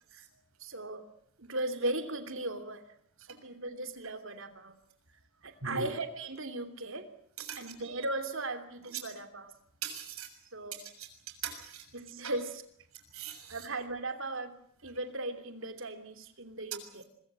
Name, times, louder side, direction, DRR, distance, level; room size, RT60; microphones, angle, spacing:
voice 1, 0.6-1.1 1.4-2.8 3.3-4.7 5.4-7.1 7.5-9.5 10.5-10.8 11.9-12.6 13.5-14.5 14.8-17.0, right 2 dB, 60° right, 8 dB, 3.0 m, -37 dB
voice 2, 9.8-10.3 11.0-11.1 11.4-11.8 12.2-12.3 13.1-13.6, right 5 dB, 80° right, 7 dB, 6.6 m, -39 dB
24.5 x 23.0 x 7.6 m, 0.66 s
head